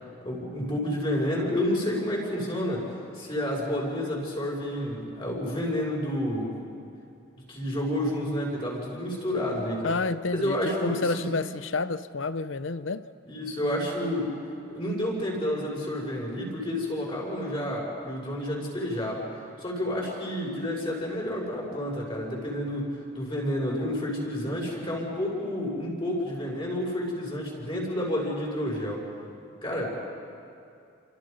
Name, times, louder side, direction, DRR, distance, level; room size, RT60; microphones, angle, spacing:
voice 1, 0.2-2.9 3.1-6.5 7.5-9.9 10.3-11.3 13.2-14.3 14.7-19.3 19.6-29.0 29.6-29.9, left 1 dB, 25° left, -3 dB, 6.5 m, -30 dB
voice 2, 9.8-13.1, left 3 dB, 70° left, 14 dB, 0.8 m, -29 dB
30.0 x 27.5 x 5.5 m, 2.5 s
head